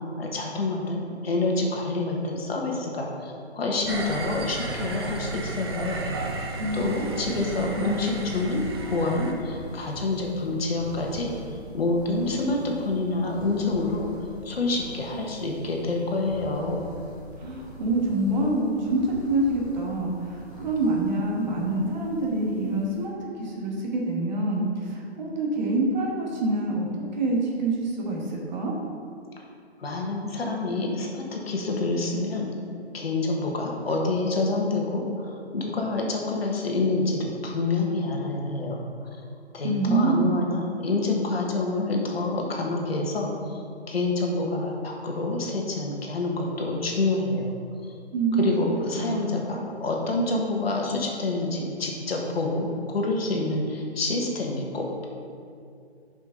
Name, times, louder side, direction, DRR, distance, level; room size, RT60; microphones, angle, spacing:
voice 1, 0.0-6.0 6.7-8.6 8.9-11.3 11.7-14.1 14.4-16.8 29.8-32.5 32.9-38.8 39.5-43.6 43.9-47.5 48.4-55.1, left 2 dB, 60° left, 0 dB, 1.6 m, -27 dB
sound 1, 3.8-23.0, left 1 dB, 15° left, 1.8 m, -44 dB
sound 2, 3.9-9.3, right 3 dB, 25° right, 0.5 m, -34 dB
voice 2, 6.6-7.2 7.6-7.9 17.4-26.9 27.1-28.7 39.6-40.3 48.1-48.4 49.0-49.2, right 2 dB, 40° right, -2 dB, 1.6 m, -26 dB
10.0 x 5.5 x 3.9 m, 2.4 s
figure-of-eight pair, 145°, 34 cm